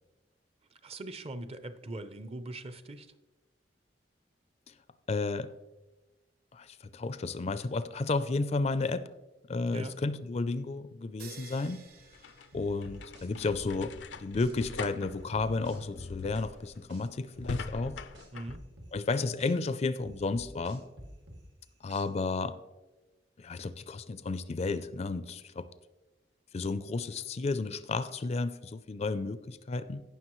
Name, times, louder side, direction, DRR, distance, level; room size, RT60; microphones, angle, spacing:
voice 1, 0.8-3.1 9.7-9.9 18.3-18.6, right 2 dB, 35° right, 11 dB, 0.6 m, -41 dB
voice 2, 5.1-5.5 6.5-9.1 9.5-11.8 12.5-18.0 18.9-20.8 21.8-22.6 23.4-25.7 26.5-30.0, left 3 dB, 35° left, 14 dB, 0.4 m, -32 dB
sound 1, 11.2-13.3, right 5 dB, 55° right, 1.2 m, -52 dB
sound 2, 11.9-18.6, left 4 dB, 90° left, 0.6 m, -42 dB
sound 3, 12.5-14.5 15.0-17.0 17.4-19.5 20.0-22.3, equal, 80° right, 2.2 m, -48 dB
17.0 x 6.0 x 3.1 m, 1.1 s
head